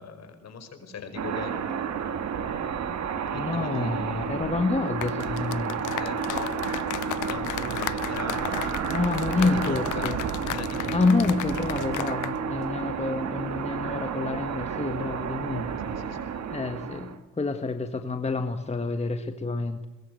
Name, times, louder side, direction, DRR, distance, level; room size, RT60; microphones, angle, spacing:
voice 1, 0.0-1.7 3.3-4.4 6.0-6.6 7.2-8.7 9.3-10.1 10.5-11.0 15.9-16.3, left 5 dB, 60° left, 7 dB, 5.5 m, -39 dB
sound 1, 1.2-17.2, right 6 dB, 65° right, 2.2 m, -31 dB
voice 2, 3.3-5.8 8.9-10.2 10.9-15.7 16.5-19.9, left 3 dB, 20° left, 7 dB, 1.7 m, -28 dB
sound 2, 4.9-12.4 12.6-12.9, left 17 dB, 80° left, 0.6 m, -35 dB
22.5 x 22.0 x 6.6 m, 1.1 s
cardioid pair, 90°, 30 cm